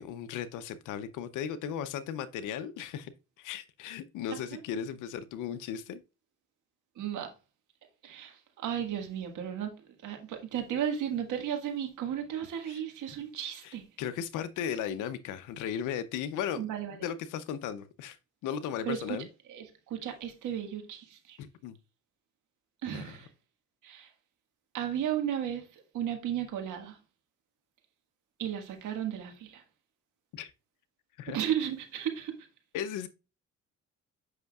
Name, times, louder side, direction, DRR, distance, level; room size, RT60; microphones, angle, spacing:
voice 1, 0.0-6.0 12.7-12.8 13.6-16.7 17.0-18.2 18.4-19.3 21.4-21.8 22.9-23.2 30.3-30.5 31.2-31.4 32.7-33.1, left 8 dB, 85° left, 0.6 m, -36 dB
voice 2, 7.0-7.3 8.0-9.7 10.0-13.8 16.6-17.0 18.8-19.2 19.5-21.4 22.8-23.3 23.8-24.1 24.7-27.0 28.4-29.6 31.3-32.3, right 9 dB, 80° right, 1.7 m, -34 dB
7.9 x 5.6 x 2.3 m
cardioid pair, 90°, 30 cm